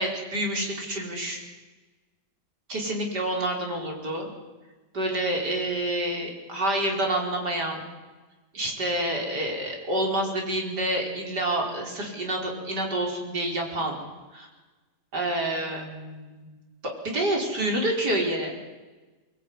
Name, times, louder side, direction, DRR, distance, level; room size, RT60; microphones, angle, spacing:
voice 1, 0.0-1.4 2.7-4.3 4.9-7.9 8.5-14.0 14.3-14.5 15.1-16.5 16.8-18.5, right 1 dB, 75° right, 1 dB, 5.6 m, -28 dB
23.5 x 21.0 x 9.8 m, 1.2 s
omnidirectional pair, 1.8 m